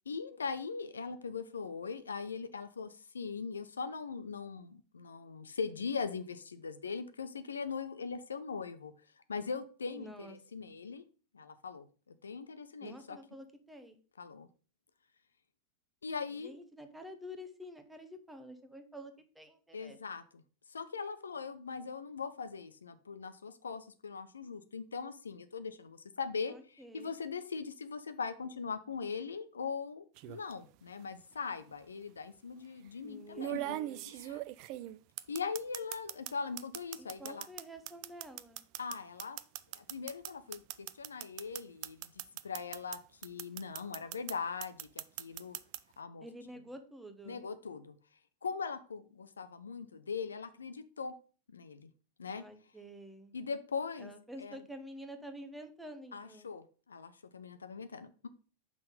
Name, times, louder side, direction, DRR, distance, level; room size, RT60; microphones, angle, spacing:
voice 1, 0.1-8.9 9.3-11.0 11.3-13.2 14.2-14.5 16.0-16.5 19.7-20.2 20.7-33.6 34.1-34.4 35.3-37.5 38.8-39.4 39.7-42.1 42.4-45.6 46.0-46.2 47.3-48.0 48.4-51.1 51.5-51.9 52.2-52.4 53.3-54.1 54.4-54.6 56.1-58.3, left 5 dB, 70° left, 11 dB, 0.4 m, -40 dB
voice 2, 10.0-10.8 12.8-14.0 16.3-20.0 26.5-27.1 33.0-34.1 37.0-38.7 46.2-47.5 52.4-53.3 54.0-56.5, equal, 5° right, 7 dB, 0.9 m, -49 dB
sound 1, 30.2-30.5 31.7-31.8 33.4-36.3 36.6-43.0 43.2-44.3 44.6-45.8, right 15 dB, 45° right, 0.3 m, -40 dB
5.9 x 3.7 x 5.2 m, 0.38 s
figure-of-eight pair, 90°, 0 cm